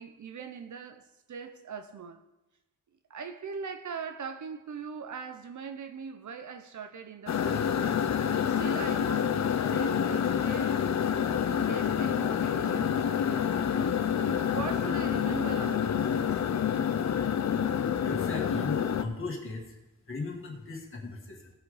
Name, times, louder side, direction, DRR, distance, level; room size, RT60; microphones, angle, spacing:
voice 1, 0.0-2.2 3.1-8.1 8.5-10.8 11.5-13.9 14.5-16.5, right 6 dB, 60° right, 0.8 m, -41 dB
sound 1, 7.3-19.0, left 8 dB, 55° left, 0.6 m, -28 dB
voice 2, 18.1-19.8 20.1-21.5, left 3 dB, 40° left, 1.8 m, -37 dB
17.5 x 5.9 x 5.0 m
wide cardioid pair, 160°, 34 cm